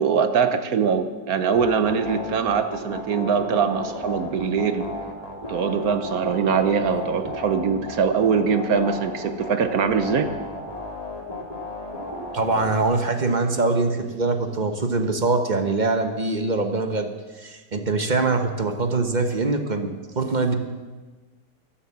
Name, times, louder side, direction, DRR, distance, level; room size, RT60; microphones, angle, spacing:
voice 1, 0.0-4.9 5.5-10.3, right 6 dB, 60° right, 9 dB, 1.3 m, -22 dB
sound 1, 1.5-12.8, left 1 dB, 20° left, 2.5 m, -34 dB
voice 2, 12.3-17.1 17.4-20.5, right 3 dB, 30° right, 6 dB, 1.1 m, -23 dB
13.0 x 11.5 x 7.4 m, 1.3 s
omnidirectional pair, 1.9 m